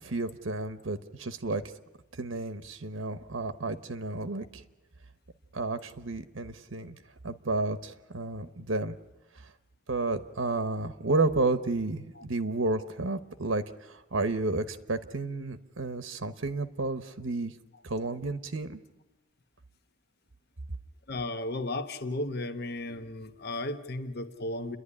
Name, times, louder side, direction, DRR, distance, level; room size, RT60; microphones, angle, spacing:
voice 1, 0.0-1.6 2.1-4.6 5.5-7.0 7.2-9.0 9.3-9.5 9.9-17.5 17.8-18.8, right 3 dB, 75° right, 10 dB, 1.0 m, -31 dB
voice 2, 21.1-24.8, left 2 dB, 50° left, 9 dB, 1.1 m, -34 dB
29.5 x 11.5 x 9.9 m, 1.1 s
head